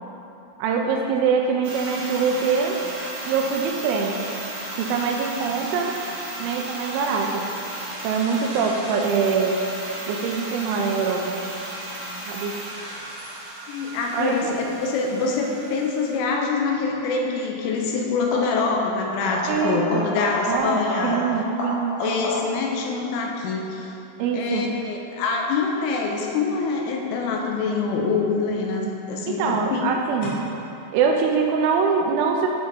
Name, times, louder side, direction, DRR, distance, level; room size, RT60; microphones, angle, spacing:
voice 1, 0.6-2.8 3.2-4.2 4.7-6.0 6.4-7.5 8.0-9.6 10.1-11.4 12.3-12.6 14.1-14.4 19.5-20.1 20.5-22.0 24.2-24.7 29.3-30.4 30.9-32.5, right 5 dB, 85° right, 1 dB, 2.9 m, -23 dB
sound 1, 1.6-16.2, right 1 dB, 60° right, 2.1 m, -35 dB
voice 2, 13.7-21.2 22.0-23.9 24.3-30.1, left 4 dB, 85° left, 0 dB, 3.2 m, -25 dB
sound 2, 16.7-17.0 18.2-19.0 19.3-22.7 28.1-28.7 30.2-30.3, left 1 dB, 60° left, 2.7 m, -30 dB
11.5 x 5.2 x 4.0 m, 2.9 s
omnidirectional pair, 5.8 m